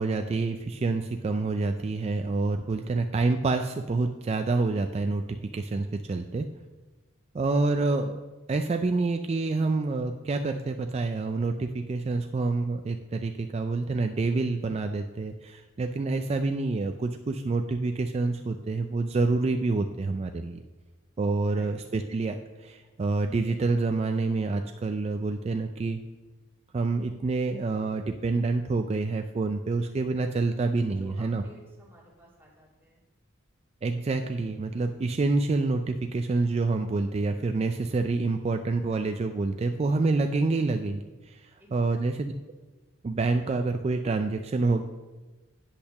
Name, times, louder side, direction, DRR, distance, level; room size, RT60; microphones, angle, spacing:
voice 1, 0.0-6.5 7.3-8.2 8.5-20.6 21.2-26.0 26.7-31.4 33.8-42.3 43.0-44.8, right 3 dB, 30° right, 6 dB, 0.3 m, -27 dB
voice 2, 30.9-33.0 41.6-42.1, right 1 dB, 10° right, -5 dB, 2.4 m, -53 dB
8.5 x 5.7 x 6.4 m, 1.2 s
head